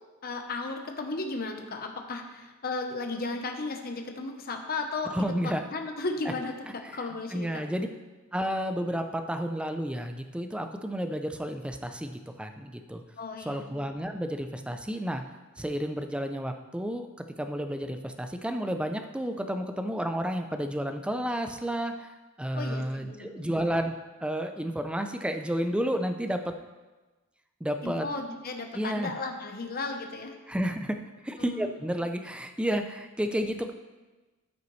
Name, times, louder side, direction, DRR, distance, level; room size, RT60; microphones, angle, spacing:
voice 1, 0.2-5.1 5.4-6.5 6.9-7.6 13.2-13.6 22.5-23.6 27.8-30.3 31.4-31.8, left 3 dB, 45° left, 4 dB, 0.9 m, -35 dB
voice 2, 5.1-5.6 6.9-7.0 7.3-7.9 8.3-13.0 13.5-15.2 15.6-17.1 17.4-22.1 22.4-23.9 24.2-26.5 27.6-28.1 28.7-29.1 30.5-31.0 31.2-33.7, equal, 5° right, 6 dB, 0.4 m, -31 dB
13.5 x 5.6 x 3.2 m, 1.2 s
head